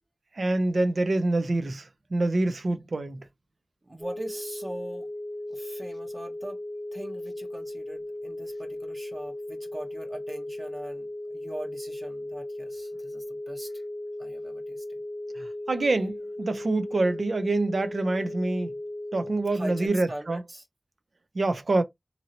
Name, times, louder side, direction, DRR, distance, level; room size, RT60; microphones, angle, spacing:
voice 1, 0.3-3.2 15.4-18.7 19.1-20.4 21.3-21.8, right 2 dB, 85° right, 0.5 m, -26 dB
voice 2, 3.8-5.1 5.5-6.6 6.9-13.7 14.2-15.0 19.5-20.7, right 1 dB, 50° right, 1.1 m, -41 dB
sound 1, 4.0-19.9, left 1 dB, 10° right, 0.6 m, -37 dB
2.8 x 2.7 x 2.8 m
wide cardioid pair, 45°, 0 cm